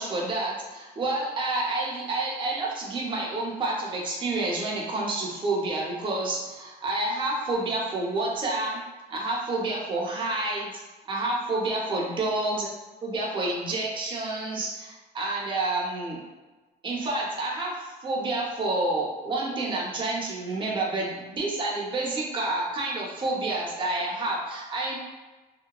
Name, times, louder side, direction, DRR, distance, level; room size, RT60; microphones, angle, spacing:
voice 1, 0.0-8.8 9.1-10.7 11.1-12.7 13.0-16.2 16.8-25.0, right 2 dB, 30° right, -3 dB, 0.6 m, -29 dB
2.9 x 2.1 x 2.3 m, 1.2 s
cardioid pair, 110°, 17 cm